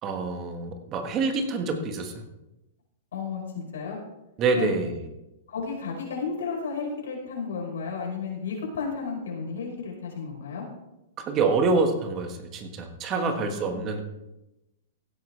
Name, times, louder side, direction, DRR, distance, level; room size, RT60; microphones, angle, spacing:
voice 1, 0.0-2.1 4.4-4.9 11.2-14.0, right 4 dB, 25° right, 5 dB, 1.5 m, -26 dB
voice 2, 3.1-4.0 4.5-4.7 5.5-10.7 13.1-13.9, left 5 dB, 85° left, -1 dB, 5.0 m, -33 dB
16.0 x 9.4 x 3.3 m, 0.94 s
hypercardioid pair, 150°, 0 cm